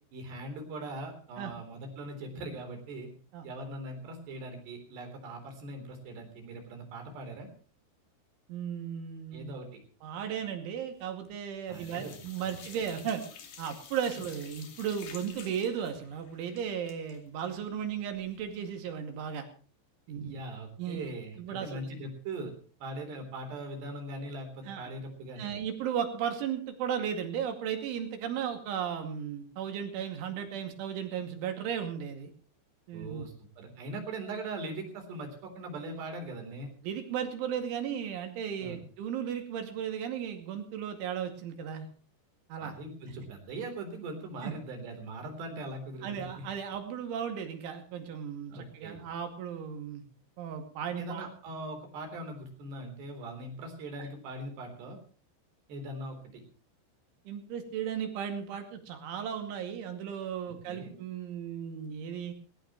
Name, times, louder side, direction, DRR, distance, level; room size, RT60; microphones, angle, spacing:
voice 1, 0.1-3.1 3.4-7.5 9.3-9.8 11.7-12.2 20.1-22.5 22.8-25.5 32.9-36.7 38.6-38.8 42.6-46.4 48.5-49.0 51.0-55.0 55.7-56.4 60.5-60.9, right 2 dB, 65° right, 5 dB, 5.7 m, -41 dB
voice 2, 8.5-9.5 10.0-13.2 13.6-19.5 20.1-20.4 20.8-21.1 21.4-21.9 24.7-24.9 25.4-32.3 32.9-33.3 36.8-41.9 42.5-42.8 44.4-44.6 46.0-50.0 50.4-51.3 57.3-62.3, right 8 dB, 85° right, 5 dB, 4.7 m, -35 dB
sound 1, 11.0-11.4 11.7-18.5 18.9-19.0 19.3-19.4, left 6 dB, 55° left, 3.7 m, -51 dB
19.5 x 18.5 x 3.1 m, 0.41 s
omnidirectional pair, 5.3 m